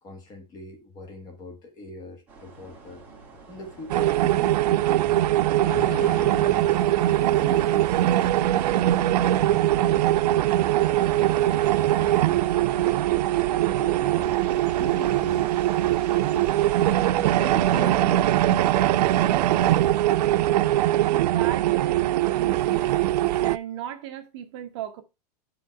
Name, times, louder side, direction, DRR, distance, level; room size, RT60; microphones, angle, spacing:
voice 1, 0.0-3.0 3.5-5.6 6.2-10.5 10.9-14.4 14.8-15.4 16.1-16.5 17.1-19.9, left 2 dB, 20° left, 1.3 m, -42 dB
sound 1, 2.3-17.8, right 3 dB, 10° right, 1.7 m, -45 dB
sound 2, 3.9-23.6, right 14 dB, 90° right, 0.5 m, -22 dB
Thunder / Rain, 5.6-13.4 13.7-13.8 14.1-15.4, left 9 dB, 35° left, 0.7 m, -43 dB
voice 2, 21.1-23.0 23.4-25.0, right 10 dB, 45° right, 1.2 m, -36 dB
8.8 x 4.9 x 4.6 m
supercardioid pair, 180°, 20 cm